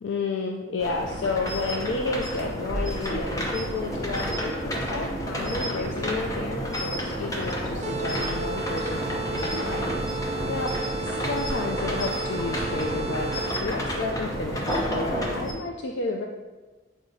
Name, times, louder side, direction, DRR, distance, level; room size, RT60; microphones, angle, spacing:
voice 1, 0.0-10.7 11.0-13.3 13.6-16.2, left 3 dB, 85° left, 2 dB, 0.5 m, -31 dB
sound 1, 0.8-15.5, equal, 20° left, 0.8 m, -30 dB
sound 2, 7.8-13.8, right 4 dB, 35° right, 0.5 m, -34 dB
7.8 x 4.8 x 2.7 m, 1.3 s
head